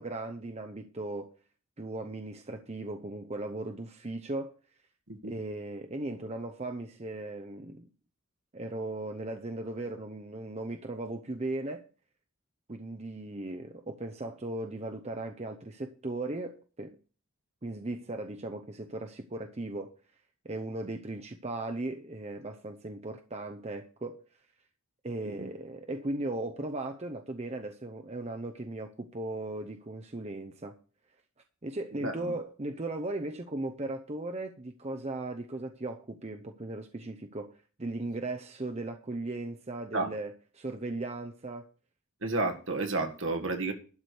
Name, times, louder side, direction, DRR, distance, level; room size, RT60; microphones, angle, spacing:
voice 1, 0.0-1.3 1.8-4.5 5.2-7.9 8.5-11.8 12.7-17.0 17.6-19.9 20.4-24.2 25.0-30.8 31.6-41.6, right 2 dB, 30° right, 0.7 m, -37 dB
voice 2, 32.0-32.3 39.9-40.1 42.2-43.7, right 2 dB, 60° right, 1.9 m, -31 dB
12.0 x 5.0 x 8.1 m
head